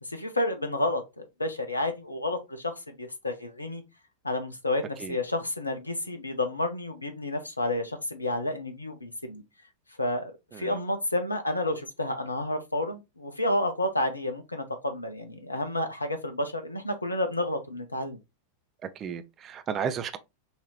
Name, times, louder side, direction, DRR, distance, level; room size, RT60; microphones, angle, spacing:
voice 1, 0.0-3.8 4.2-9.4 10.0-18.2, left 1 dB, 80° left, 0.7 m, -30 dB
voice 2, 18.8-20.2, right 7 dB, 30° right, 0.6 m, -33 dB
5.6 x 2.8 x 3.0 m
figure-of-eight pair, 90°, 0 cm